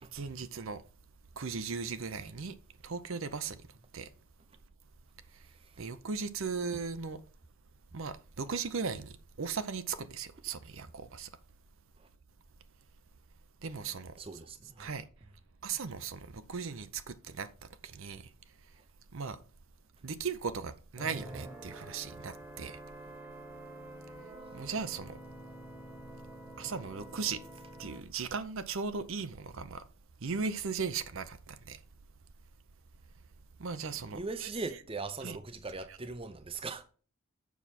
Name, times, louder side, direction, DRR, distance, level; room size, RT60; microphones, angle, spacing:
voice 1, 0.1-0.8 1.4-2.6 2.8-3.6 3.9-4.1 5.8-7.2 7.9-11.3 13.6-14.4 14.8-15.0 15.6-17.5 17.8-18.3 19.1-19.4 20.0-22.8 24.5-25.2 26.6-27.4 27.8-29.8 30.2-31.8 33.6-34.8 35.2-35.4 35.9-36.0, right 5 dB, 65° right, 0.7 m, -37 dB
voice 2, 14.2-14.9 34.1-36.8, right 3 dB, 25° right, 0.6 m, -40 dB
sound 1, 21.0-28.0, right 1 dB, 5° right, 1.2 m, -48 dB
7.1 x 5.9 x 4.2 m
head